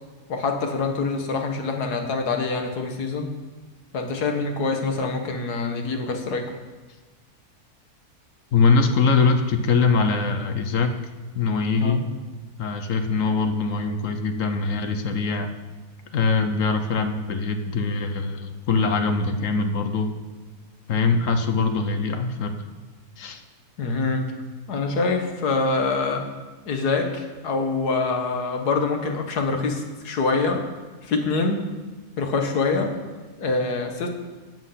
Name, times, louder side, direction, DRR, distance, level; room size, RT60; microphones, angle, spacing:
voice 1, 0.3-3.3 3.9-6.5 11.8-12.0 23.8-24.3 24.7-26.2 26.7-30.6 31.0-31.6 32.2-33.0 33.4-34.1, left 3 dB, 85° left, 4 dB, 1.8 m, -25 dB
voice 2, 8.5-11.0 11.3-12.1 12.6-15.5 16.1-20.1 20.9-22.5 23.2-23.4, left 4 dB, 60° left, 7 dB, 1.1 m, -22 dB
12.5 x 7.9 x 5.7 m, 1.3 s
omnidirectional pair, 1.6 m